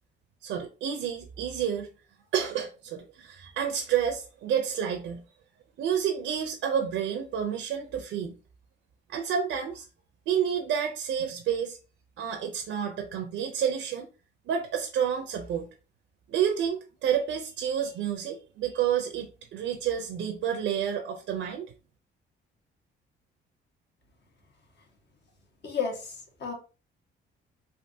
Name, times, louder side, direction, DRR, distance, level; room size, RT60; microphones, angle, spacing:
voice 1, 0.4-1.9 2.3-5.2 5.8-8.4 9.1-9.9 10.3-11.8 12.2-14.1 14.5-15.7 16.3-21.7, right 8 dB, 75° right, 0.5 m, -29 dB
voice 2, 25.6-26.5, left 6 dB, 60° left, 1.2 m, -32 dB
3.4 x 2.5 x 2.6 m
cardioid pair, 90°, 20 cm